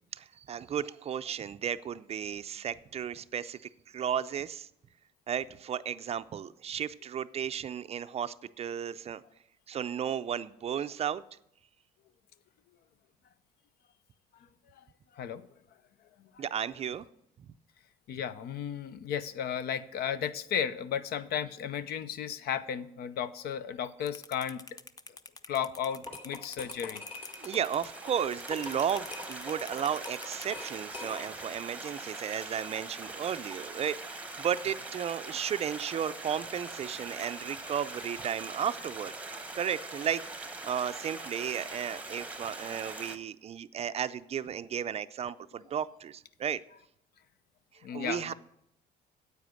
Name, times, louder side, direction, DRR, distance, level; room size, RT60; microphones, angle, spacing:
voice 1, 0.1-3.6 3.9-4.7 5.3-9.2 9.7-11.2 16.4-17.0 27.4-39.1 39.6-46.6 47.9-48.3, right 8 dB, 40° right, 13 dB, 0.4 m, -34 dB
voice 2, 18.1-24.6 25.5-27.0 47.8-48.3, left 8 dB, 70° left, 14 dB, 0.7 m, -34 dB
sound 1, 24.1-30.4, left 4 dB, 20° left, 0.5 m, -45 dB
sound 2, 25.9-31.5, left 2 dB, 35° left, 2.7 m, -45 dB
Stream, 26.8-43.2, right 2 dB, 10° right, 0.9 m, -42 dB
9.4 x 8.3 x 6.3 m, 0.77 s
cardioid pair, 110°, 17 cm